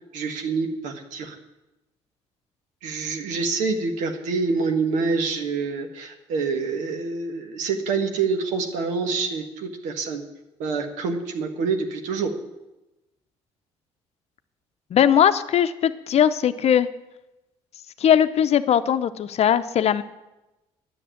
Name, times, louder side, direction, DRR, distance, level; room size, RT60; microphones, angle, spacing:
voice 1, 0.1-1.3 2.8-10.2 10.6-12.3, right 4 dB, 80° right, 4 dB, 1.6 m, -26 dB
voice 2, 14.9-16.9 18.0-20.0, left 9 dB, 55° left, 11 dB, 0.7 m, -19 dB
10.0 x 6.8 x 9.2 m, 0.98 s
supercardioid pair, 60°, 13 cm